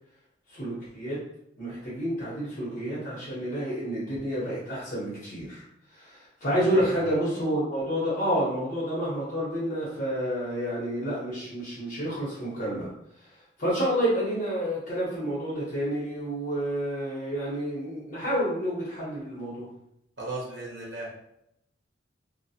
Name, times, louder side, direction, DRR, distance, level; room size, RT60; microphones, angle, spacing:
voice 1, 0.5-1.2 1.6-5.6 5.9-12.9 13.6-19.7, equal, 45° left, -8 dB, 0.9 m, -29 dB
voice 2, 6.5-7.0 20.2-21.2, right 2 dB, 80° right, -4 dB, 0.9 m, -37 dB
2.3 x 2.3 x 2.7 m, 0.80 s
head